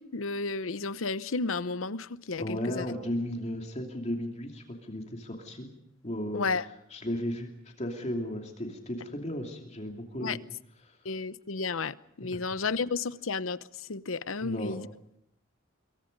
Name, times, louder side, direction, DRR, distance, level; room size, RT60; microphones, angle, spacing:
voice 1, 0.0-2.9 6.3-6.7 10.2-10.4 11.0-14.9, left 4 dB, 80° left, 0.8 m, -32 dB
voice 2, 2.4-5.7 6.0-6.6 6.9-10.4 10.8-11.0 12.2-12.7 14.4-14.8, left 1 dB, 35° left, 2.8 m, -35 dB
26.5 x 23.0 x 5.4 m
head